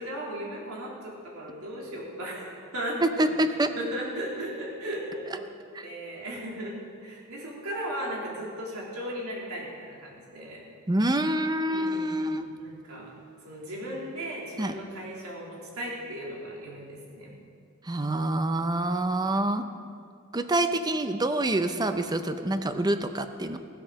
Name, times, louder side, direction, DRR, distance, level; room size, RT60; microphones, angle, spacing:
voice 1, 0.0-5.5 5.8-10.6 11.7-13.1 13.4-17.4, equal, 90° right, -3 dB, 3.4 m, -37 dB
voice 2, 3.0-3.7 5.7-5.9 10.9-12.5 14.6-14.7 17.8-19.7 20.3-23.6, right 1 dB, 20° right, 9 dB, 0.6 m, -26 dB
16.5 x 8.1 x 6.4 m, 2.3 s
head